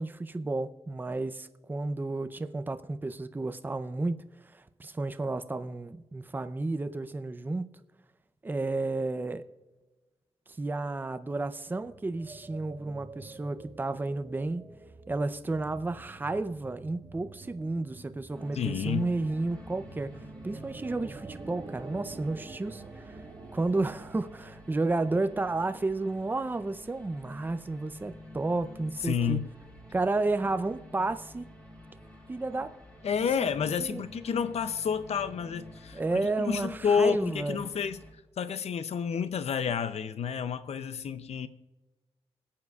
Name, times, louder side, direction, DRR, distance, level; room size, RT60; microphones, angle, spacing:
voice 1, 0.0-7.7 8.4-9.5 10.6-14.6 15.1-20.1 20.4-23.2 23.5-29.4 29.9-31.5 32.3-32.7 33.1-33.5 33.8-34.0 35.9-37.6, right 2 dB, 20° right, 0.5 m, -32 dB
sound 1, 11.4-25.5, right 3 dB, 40° right, 1.2 m, -48 dB
sound 2, 18.3-38.1, equal, 10° left, 2.8 m, -50 dB
voice 2, 18.5-19.1 29.0-29.5 33.0-41.5, left 6 dB, 85° left, 0.5 m, -30 dB
24.5 x 8.5 x 2.3 m
wide cardioid pair, 160°, 11 cm